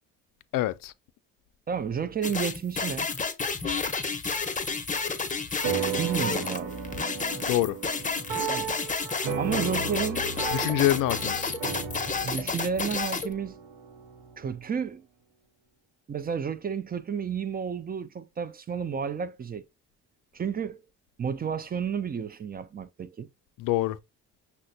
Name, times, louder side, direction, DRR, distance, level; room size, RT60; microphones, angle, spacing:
voice 1, 0.5-0.9 7.5-7.8 10.5-11.5 23.6-24.0, left 15 dB, 60° left, 0.5 m, -25 dB
voice 2, 1.7-3.1 6.0-6.8 8.5-8.7 9.4-10.3 12.2-13.6 14.4-15.0 16.1-19.6 20.3-20.8 21.2-23.3, right 7 dB, 25° right, 0.4 m, -31 dB
sound 1, 2.2-13.3, left 4 dB, 20° left, 0.7 m, -31 dB
sound 2, 5.6-14.4, right 6 dB, 70° right, 0.7 m, -35 dB
5.7 x 2.2 x 2.6 m
supercardioid pair, 65°, 37 cm